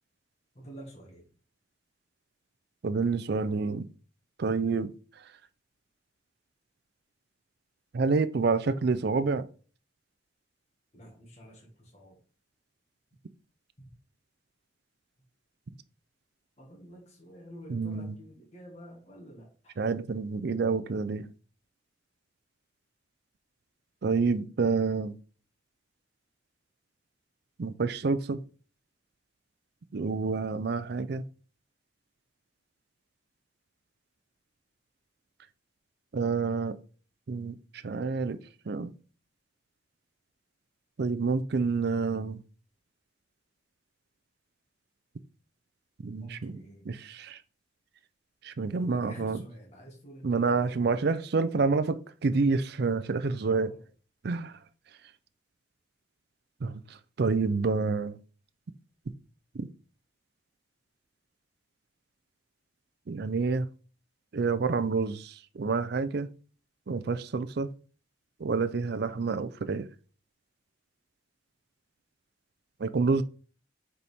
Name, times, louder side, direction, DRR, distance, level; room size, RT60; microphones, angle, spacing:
voice 1, 0.5-1.3 10.9-12.2 16.6-19.8 46.2-46.8 48.7-51.0 53.4-53.8, equal, 35° left, 1.6 m, -49 dB
voice 2, 2.8-3.9 4.4-4.9 7.9-9.5 17.7-18.1 19.8-21.3 24.0-25.2 27.6-28.4 29.9-31.2 36.1-36.8 37.3-37.6 37.8-38.4 38.7-38.9 41.0-42.4 46.0-46.6 46.9-47.4 48.4-49.4 50.2-53.7 54.2-54.5 56.6-56.7 57.2-58.2 59.5-59.7 63.1-63.7 64.3-66.3 66.9-67.7 68.4-69.9 72.8-73.2, right 4 dB, 55° right, 0.4 m, -28 dB
6.7 x 4.2 x 3.5 m
head